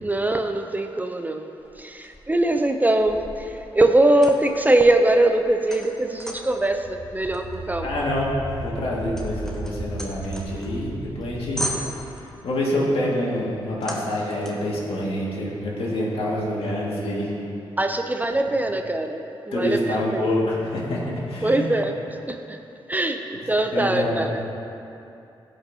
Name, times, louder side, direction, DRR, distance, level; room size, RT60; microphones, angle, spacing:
voice 1, 0.0-1.5 1.8-8.0 17.8-20.3 21.4-21.9 22.3-22.6 22.9-24.4, right 1 dB, 15° right, 6 dB, 0.5 m, -22 dB
sound 1, 1.6-2.5 3.0-6.6 7.3-10.9 11.2-11.3 11.6-12.4 13.8-14.7, equal, 5° left, 1.2 m, -37 dB
sound 2, 6.0-12.8, right 1 dB, 35° right, 2.0 m, -36 dB
voice 2, 7.8-8.3 8.6-11.7 12.1-17.3 19.5-21.0 21.3-21.7 23.7-24.2, left 1 dB, 75° left, -5 dB, 1.9 m, -26 dB
15.0 x 5.5 x 2.8 m, 2.8 s
cardioid pair, 70°, 10 cm